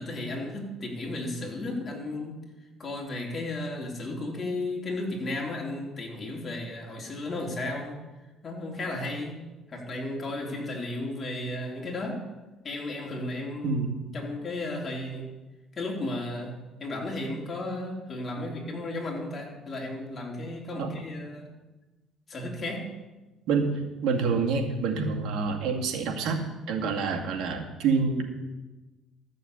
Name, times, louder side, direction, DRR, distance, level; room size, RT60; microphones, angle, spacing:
voice 1, 0.0-2.4 2.8-8.0 8.4-9.4 9.7-12.2 12.6-13.8 14.1-15.3 15.7-21.5 22.3-22.9, left 2 dB, 30° left, -1 dB, 3.5 m, -34 dB
voice 2, 24.0-28.2, right 5 dB, 70° right, 2 dB, 2.3 m, -27 dB
13.5 x 6.9 x 8.1 m, 1.1 s
cardioid pair, 110°, 0 cm